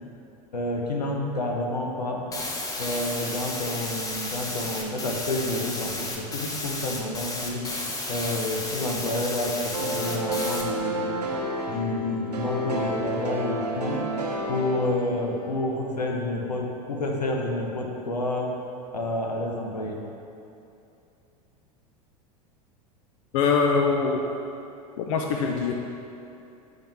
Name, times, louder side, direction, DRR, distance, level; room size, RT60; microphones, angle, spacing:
voice 1, 0.5-2.2 2.8-7.6 8.1-11.3 11.7-14.0 14.5-18.5 18.9-20.0, left 1 dB, 80° left, 0 dB, 0.9 m, -29 dB
sound 1, 2.3-10.6, left 2 dB, 15° left, 0.9 m, -33 dB
sound 2, 9.7-15.6, right 1 dB, 85° right, 0.8 m, -30 dB
voice 2, 23.3-24.2 25.0-25.8, left 5 dB, 55° left, 2 dB, 0.5 m, -23 dB
10.0 x 4.0 x 3.4 m, 2.7 s
figure-of-eight pair, 85°, 20 cm